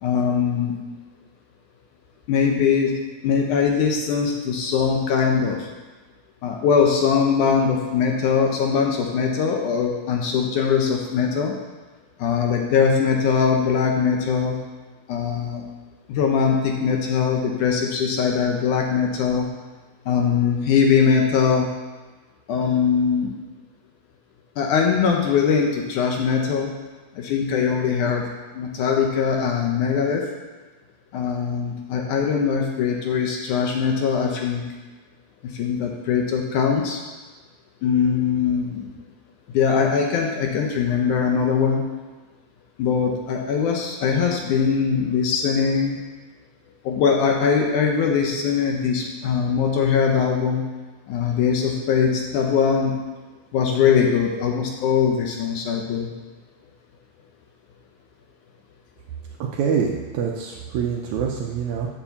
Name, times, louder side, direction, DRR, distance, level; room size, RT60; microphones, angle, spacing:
voice 1, 0.0-0.7 2.3-2.9 3.2-5.7 6.4-11.5 12.2-14.6 15.1-15.6 16.1-19.5 20.1-21.7 22.5-23.4 24.6-26.7 27.2-28.2 28.5-30.2 31.1-34.6 35.4-37.0 37.8-38.9 39.5-41.8 42.8-46.0 46.8-50.6 51.1-52.9 53.5-56.1, left 6 dB, 70° left, 1 dB, 2.0 m, -21 dB
voice 2, 59.5-61.9, right 6 dB, 85° right, 0 dB, 1.6 m, -25 dB
7.4 x 7.1 x 7.1 m, 1.3 s
omnidirectional pair, 4.3 m